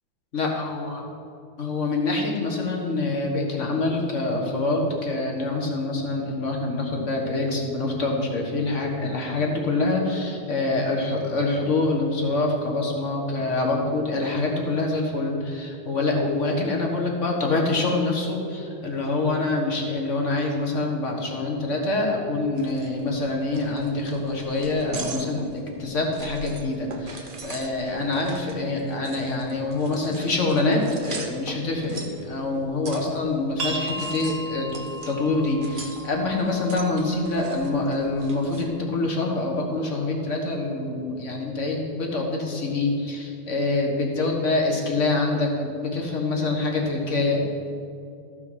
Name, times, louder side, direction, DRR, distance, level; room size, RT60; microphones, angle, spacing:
voice 1, 0.3-1.0 1.6-34.7 35.1-47.4, left 2 dB, 40° left, 0 dB, 1.5 m, -25 dB
sound 1, 22.6-38.7, right 3 dB, 70° right, 0.5 m, -41 dB
sound 2, 33.6-39.0, right 1 dB, 85° right, 2.5 m, -37 dB
13.5 x 6.1 x 6.3 m, 2.5 s
omnidirectional pair, 2.4 m